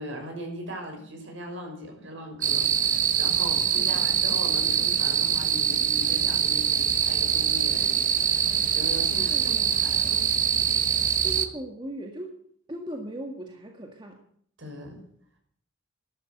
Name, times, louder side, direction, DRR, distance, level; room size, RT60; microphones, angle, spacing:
voice 1, 0.0-10.4 14.6-15.0, equal, 65° right, 2 dB, 6.2 m, -39 dB
sound 1, 2.4-11.5, right 8 dB, 40° right, 1.2 m, -24 dB
voice 2, 3.7-4.2 9.1-9.9 11.2-12.4 12.7-14.2, right 1 dB, 25° right, 1 dB, 1.8 m, -39 dB
12.5 x 12.5 x 8.0 m, 0.63 s
head